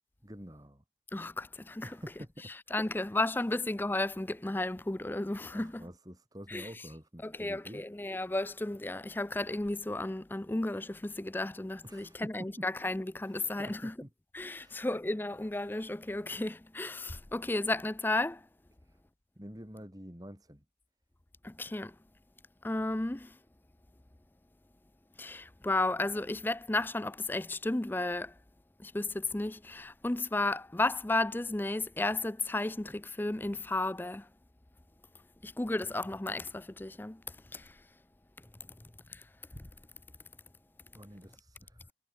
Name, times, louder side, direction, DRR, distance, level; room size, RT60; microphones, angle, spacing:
voice 1, 0.2-0.8 1.8-3.0 5.5-7.8 11.8-12.7 13.3-14.1 14.5-14.9 18.8-19.0 19.4-20.6 38.6-38.8 40.9-41.9, equal, 20° right, 3.8 m, -48 dB
voice 2, 1.1-1.9 2.7-5.9 6.5-6.7 7.2-13.9 14.3-18.4 21.4-21.9 22.6-23.3 25.2-28.3 28.8-34.2 35.4-37.2 37.5-37.6, left 2 dB, 10° left, 0.4 m, -33 dB
head